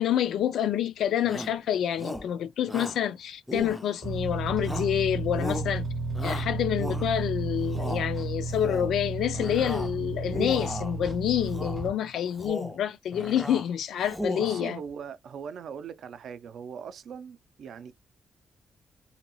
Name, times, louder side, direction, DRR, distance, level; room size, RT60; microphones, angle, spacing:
voice 1, 0.0-5.9 6.2-14.8, left 10 dB, 80° left, 0.4 m, -28 dB
Shout, 1.2-1.6 2.0-2.3 2.7-3.0 3.5-4.2 4.6-5.0 5.3-5.7 6.1-7.3 7.6-8.1 8.5-8.9 9.3-9.9 10.3-11.0 11.5-11.9 12.3-12.8 13.1-13.7 14.0-14.7, left 1 dB, 5° left, 0.4 m, -36 dB
sound 1, 4.0-11.9, right 2 dB, 35° right, 0.7 m, -32 dB
voice 2, 14.4-17.9, right 7 dB, 60° right, 0.4 m, -40 dB
2.8 x 2.2 x 2.9 m
wide cardioid pair, 170°, 0 cm